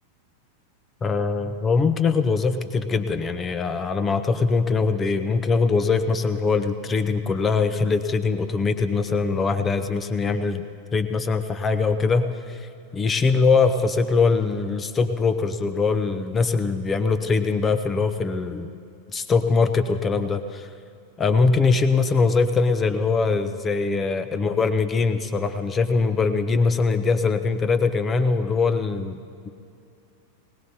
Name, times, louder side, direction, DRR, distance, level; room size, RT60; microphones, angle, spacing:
voice 1, 1.0-10.6 10.9-18.7 19.1-20.7 21.2-29.5, left 4 dB, 20° left, 10 dB, 0.7 m, -22 dB
20.5 x 18.5 x 2.8 m, 2.5 s
figure-of-eight pair, 90°, 0 cm